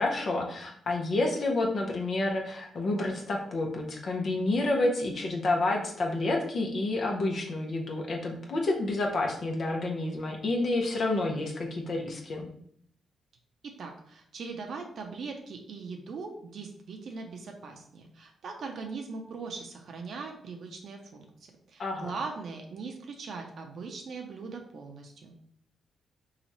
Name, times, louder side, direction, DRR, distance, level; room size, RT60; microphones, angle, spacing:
voice 1, 0.0-12.5 21.8-22.1, left 2 dB, 60° left, 1 dB, 0.7 m, -29 dB
voice 2, 13.6-21.2 21.7-25.3, right 4 dB, 65° right, 2 dB, 0.5 m, -40 dB
3.0 x 2.4 x 4.0 m, 0.64 s
cardioid pair, 70°, 0 cm